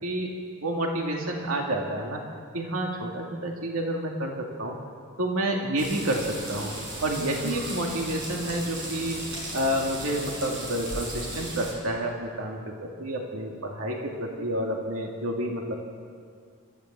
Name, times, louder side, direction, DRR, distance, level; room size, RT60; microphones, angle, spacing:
voice 1, 0.0-0.3 0.6-2.2 2.5-4.8 5.2-6.7 7.0-9.2 9.5-15.7, right 1 dB, 85° right, 0 dB, 2.3 m, -29 dB
sound 1, 5.8-11.7, right 1 dB, 60° right, 6.4 m, -36 dB
26.5 x 14.0 x 7.5 m, 2.1 s
head